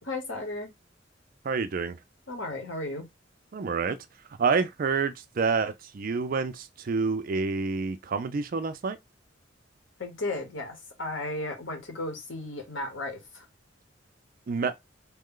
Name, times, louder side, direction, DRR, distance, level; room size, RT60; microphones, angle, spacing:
voice 1, 0.1-0.7 2.3-3.1 10.0-13.4, left 2 dB, 80° left, 1.2 m, -34 dB
voice 2, 1.4-2.0 3.5-4.0 4.4-9.0 14.5-14.7, right 4 dB, 45° right, 0.4 m, -28 dB
3.1 x 2.2 x 3.7 m
head